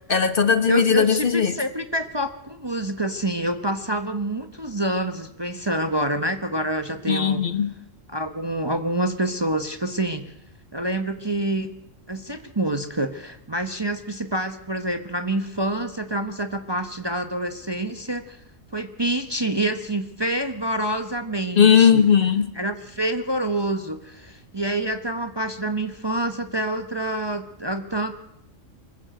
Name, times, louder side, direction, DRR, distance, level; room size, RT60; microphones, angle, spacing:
voice 1, 0.1-1.5 7.1-7.7 21.6-22.5, left 7 dB, 45° left, 11 dB, 1.3 m, -18 dB
voice 2, 0.7-7.4 8.1-10.3 10.7-11.7 12.1-18.4 18.7-22.0 22.6-28.1, right 1 dB, 20° right, 9 dB, 1.0 m, -27 dB
24.5 x 14.5 x 7.7 m, 0.83 s
omnidirectional pair, 1.3 m